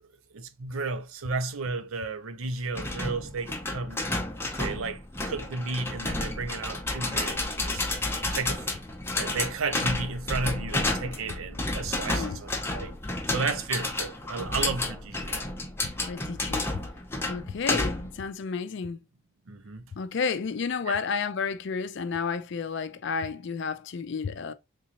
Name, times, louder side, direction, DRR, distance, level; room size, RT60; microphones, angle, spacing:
voice 1, 0.3-4.0 4.6-7.9 8.3-8.6 9.2-12.9 13.3-15.4 19.5-19.8 20.9-21.0, right 4 dB, 75° right, 0.6 m, -33 dB
sound 1, 2.8-18.2, left 2 dB, 10° left, 0.6 m, -31 dB
voice 2, 12.1-12.4 16.1-16.9 17.3-19.0 19.9-24.5, left 5 dB, 55° left, 0.4 m, -31 dB
3.7 x 2.7 x 2.8 m
head